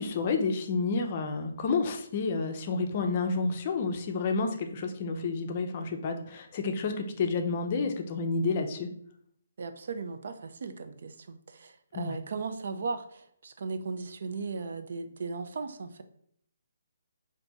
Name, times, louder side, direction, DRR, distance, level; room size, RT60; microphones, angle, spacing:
voice 1, 0.0-8.9 11.9-12.2, left 4 dB, 35° left, 5 dB, 0.5 m, -30 dB
voice 2, 9.6-16.0, right 4 dB, 60° right, 8 dB, 0.4 m, -37 dB
3.5 x 2.6 x 3.9 m, 0.67 s
hypercardioid pair, 165°, 0 cm